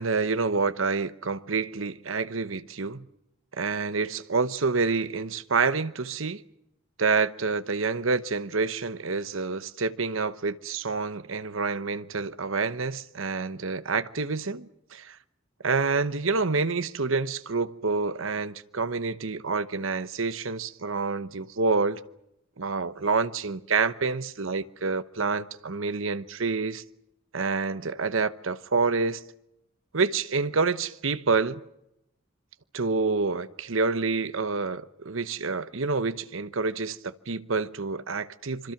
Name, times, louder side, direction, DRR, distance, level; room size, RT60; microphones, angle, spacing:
voice 1, 0.0-3.0 3.6-6.4 7.0-15.1 15.6-22.0 22.6-26.8 27.3-29.2 29.9-31.6 32.7-38.7, right 4 dB, 75° right, 1.0 m, -28 dB
26.5 x 25.0 x 6.0 m
head